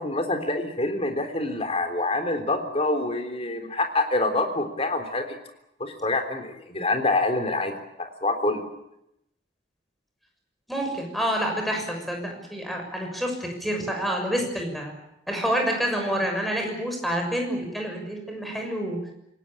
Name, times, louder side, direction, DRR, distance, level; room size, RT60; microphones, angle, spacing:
voice 1, 0.0-5.4 5.8-8.6, left 2 dB, 30° left, 6 dB, 3.5 m, -26 dB
voice 2, 10.7-14.9 15.3-19.0, equal, ahead, 2 dB, 6.4 m, -28 dB
27.0 x 18.5 x 8.8 m, 0.83 s
head